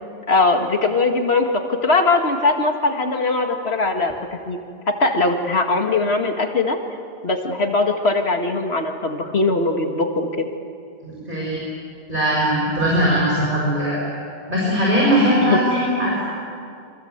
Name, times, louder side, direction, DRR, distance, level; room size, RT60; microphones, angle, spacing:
voice 1, 0.3-1.5 1.8-4.1 4.5-4.6 5.0-6.8 7.2-10.5 15.4-15.6, left 3 dB, 90° left, 4 dB, 2.3 m, -20 dB
voice 2, 11.0-11.6 12.1-14.0 14.5-16.2, equal, 55° right, -5 dB, 6.6 m, -20 dB
27.5 x 25.5 x 8.1 m, 2.4 s
omnidirectional pair, 1.0 m